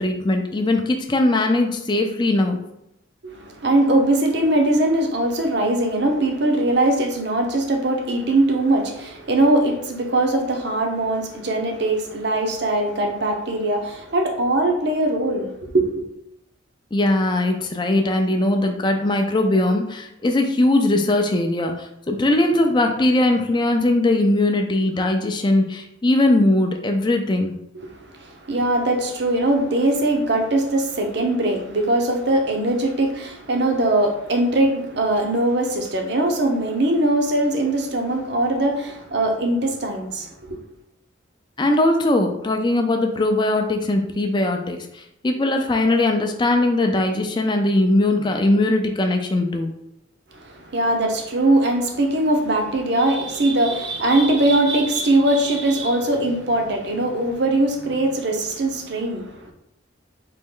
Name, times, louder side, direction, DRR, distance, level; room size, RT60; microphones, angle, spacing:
voice 1, 0.0-2.6 16.9-27.6 41.6-49.7, left 2 dB, 20° left, 0.4 m, -20 dB
voice 2, 3.2-15.9 27.7-27.9 28.2-40.6 50.3-59.5, right 1 dB, 55° right, 0.7 m, -21 dB
4.2 x 3.1 x 3.7 m
head